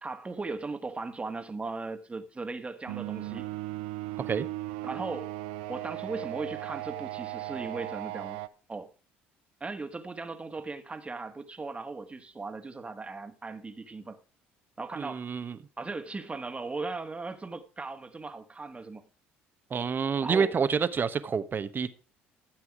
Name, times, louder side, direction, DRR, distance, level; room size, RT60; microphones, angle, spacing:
voice 1, 0.0-3.5 4.8-5.3 5.7-8.4 8.7-8.9 9.6-14.2 14.8-15.3 15.8-19.0 20.2-20.5, right 3 dB, 20° right, 1.6 m, -37 dB
sound 1, 2.9-8.5, right 17 dB, 75° right, 0.6 m, -37 dB
voice 2, 4.2-4.5 14.9-15.6 19.7-21.9, right 6 dB, 35° right, 1.1 m, -28 dB
13.5 x 7.7 x 4.9 m
hypercardioid pair, 60°, 6 cm